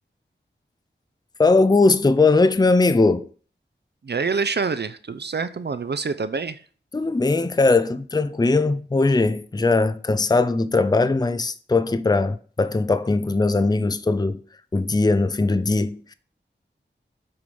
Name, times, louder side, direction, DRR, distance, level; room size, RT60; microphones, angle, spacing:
voice 1, 1.4-3.3 6.9-14.4 14.7-16.1, left 3 dB, 20° left, 0.5 m, -20 dB
voice 2, 4.0-6.6, right 5 dB, 60° right, 0.6 m, -26 dB
7.9 x 5.0 x 5.4 m
wide cardioid pair, 55°, 20 cm